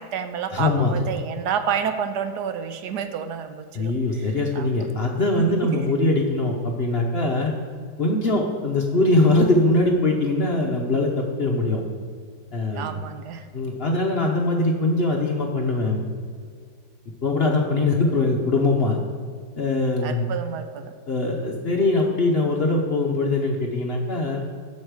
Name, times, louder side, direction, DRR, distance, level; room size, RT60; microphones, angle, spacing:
voice 1, 0.0-3.9 4.5-4.8 5.4-5.8 12.7-13.5 20.0-20.9, right 7 dB, 70° right, 8 dB, 1.1 m, -29 dB
voice 2, 0.5-1.0 3.7-7.5 8.0-11.8 12.5-13.0 13.5-16.1 17.2-19.0 19.6-20.3 21.1-24.4, left 2 dB, 50° left, 0 dB, 0.8 m, -22 dB
7.9 x 5.4 x 6.6 m, 2.1 s
omnidirectional pair, 1.9 m